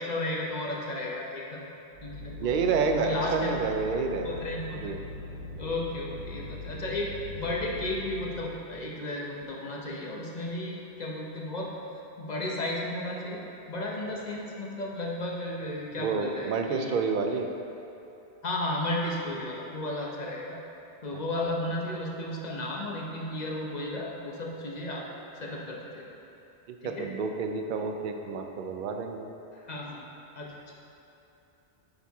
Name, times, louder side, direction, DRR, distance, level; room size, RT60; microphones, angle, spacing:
voice 1, 0.0-1.6 2.0-2.5 2.9-3.5 4.2-4.8 5.6-11.7 12.2-13.4 13.7-17.0 18.4-20.6 21.0-25.1 25.4-26.1 26.8-27.1 29.5-30.0 30.4-30.7, left 1 dB, 45° left, -2 dB, 0.9 m, -34 dB
sound 1, 1.9-8.5, left 3 dB, 45° right, 1.1 m, -41 dB
voice 2, 2.4-4.4 4.7-5.0 16.0-17.5 21.4-21.5 26.8-29.3, right 5 dB, 60° right, 4 dB, 0.6 m, -29 dB
9.0 x 4.4 x 3.5 m, 2.9 s
omnidirectional pair, 1.0 m